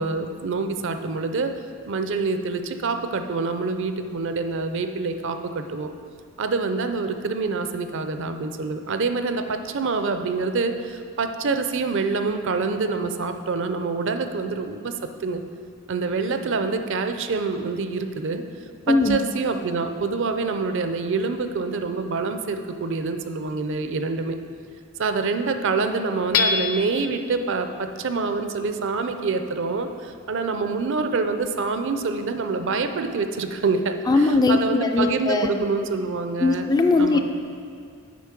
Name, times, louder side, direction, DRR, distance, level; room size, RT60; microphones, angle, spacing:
voice 1, 0.0-1.6 1.9-5.9 6.4-14.9 15.2-15.4 15.9-18.4 18.9-24.3 25.0-36.7 37.0-37.2, right 4 dB, 55° right, 8 dB, 0.5 m, -26 dB
voice 2, 18.9-19.2 34.1-35.6 36.4-37.2, left 3 dB, 15° left, 5 dB, 0.3 m, -20 dB
Hammer / Chink clink, 26.3-27.1, left 6 dB, 70° left, 0.5 m, -23 dB
8.3 x 5.1 x 5.9 m, 2.2 s
head